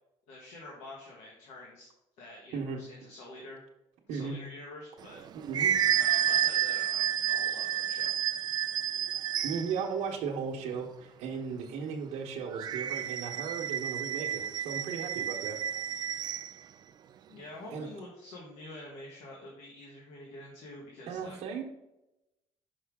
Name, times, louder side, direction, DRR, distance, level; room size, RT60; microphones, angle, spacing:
voice 1, 0.3-1.9 2.2-3.6 4.1-5.2 6.0-8.1 17.3-21.4, left 2 dB, 85° left, -2 dB, 1.5 m, -47 dB
voice 2, 4.1-4.4 5.3-5.7 9.4-15.6 17.7-17.9 21.1-21.6, right 6 dB, 70° right, 0 dB, 1.1 m, -36 dB
sound 1, 5.0-9.8 12.5-16.5, right 10 dB, 40° right, 0.3 m, -30 dB
5.6 x 5.5 x 3.5 m, 0.94 s
cardioid pair, 145°, 11 cm